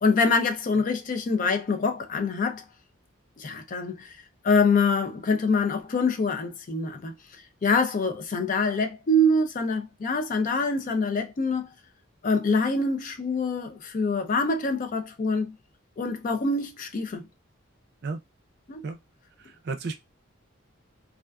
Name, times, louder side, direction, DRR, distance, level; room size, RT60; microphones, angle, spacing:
voice 1, 0.0-2.6 3.4-4.1 4.4-7.1 7.6-11.7 12.2-15.5 16.0-17.3 18.7-18.8, left 3 dB, 40° left, 0.4 m, -25 dB
voice 2, 19.4-20.0, right 3 dB, 55° right, 0.4 m, -33 dB
2.4 x 2.3 x 2.2 m
head